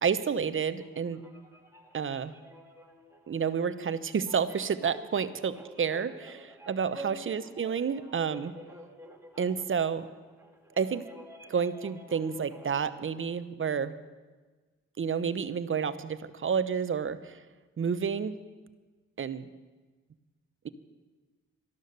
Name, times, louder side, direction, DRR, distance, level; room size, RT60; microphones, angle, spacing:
voice 1, 0.0-1.2 1.9-2.3 3.3-8.5 9.4-10.1 10.8-11.0 11.5-14.0 15.0-17.4 17.8-18.4 19.2-19.5, right 6 dB, 40° right, 13 dB, 0.9 m, -30 dB
sound 1, 0.7-12.8, right 1 dB, 10° right, 2.3 m, -50 dB
12.5 x 12.0 x 6.7 m, 1.3 s
supercardioid pair, 60°, 30 cm